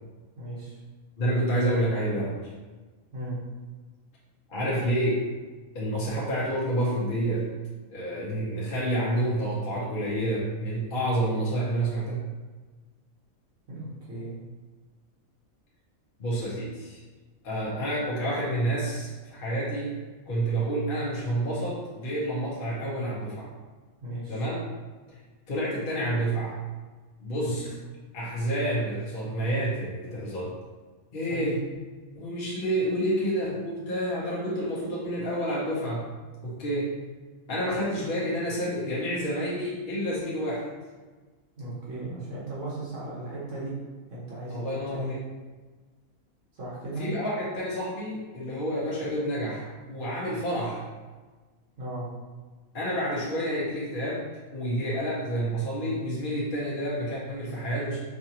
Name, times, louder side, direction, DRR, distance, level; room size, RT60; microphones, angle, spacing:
voice 1, 0.4-0.8 3.1-3.4 4.6-4.8 13.7-14.4 24.0-24.4 27.4-27.6 31.3-31.5 41.6-43.7 44.1-45.1 46.5-47.1 51.8-52.1, right 1 dB, 60° right, -7 dB, 1.5 m, -36 dB
voice 2, 1.2-2.5 4.5-5.2 5.7-7.5 7.9-12.3 16.2-17.0 17.4-19.9 20.3-23.5 24.3-24.6 25.1-25.2 25.5-26.6 27.2-27.7 28.1-30.5 31.1-31.6 32.1-36.1 36.4-36.9 37.5-40.6 44.5-45.2 47.0-50.9 52.7-58.0, right 1 dB, 40° left, -7 dB, 0.9 m, -29 dB
4.9 x 2.4 x 2.8 m, 1.3 s
omnidirectional pair, 1.4 m